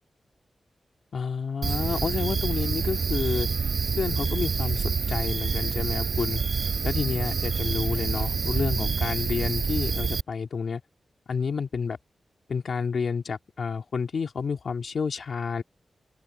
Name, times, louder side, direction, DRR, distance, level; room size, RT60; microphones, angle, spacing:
voice 1, 1.1-3.5 4.0-6.4 6.8-10.8 11.3-12.0 12.5-15.6, left 5 dB, 60° left, 2.4 m, -30 dB
sound 1, 1.6-10.2, right 5 dB, 55° right, 5.0 m, -27 dB
wide cardioid pair, 125°, 0 cm